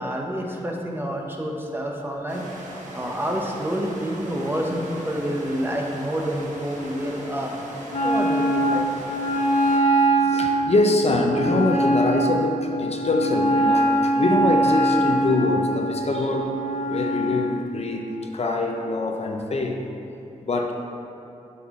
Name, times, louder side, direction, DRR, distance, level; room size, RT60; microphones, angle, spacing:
voice 1, 0.0-7.5 8.0-8.9, equal, 15° right, 0 dB, 0.9 m, -28 dB
sound 1, 2.3-9.8, right 1 dB, 65° right, 1.3 m, -39 dB
Wind instrument woodwind instrument, 7.9-17.5, right 1 dB, 85° left, 0.9 m, -22 dB
voice 2, 10.2-16.5 16.9-19.8 20.4-20.7, left 2 dB, 50° left, 1 dB, 0.7 m, -24 dB
8.5 x 5.6 x 3.7 m, 2.8 s
wide cardioid pair, 90°, 13 cm